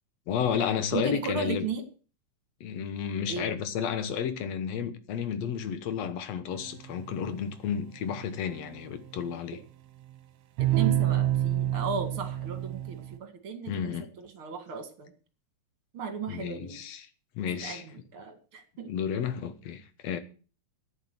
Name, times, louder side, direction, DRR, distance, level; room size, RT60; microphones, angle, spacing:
voice 1, 0.3-1.7 2.6-9.6 13.7-14.1 16.3-17.1 17.4-17.8 18.9-20.2, left 8 dB, 65° left, 2.4 m, -32 dB
voice 2, 0.9-1.9 3.3-3.5 10.6-15.1 15.9-16.8 17.6-17.8 18.1-18.9, right 5 dB, 50° right, 2.7 m, -35 dB
sound 1, 6.5-7.3 8.0-9.2 10.6-13.2, right 12 dB, 70° right, 2.2 m, -29 dB
11.0 x 8.9 x 8.0 m
omnidirectional pair, 3.4 m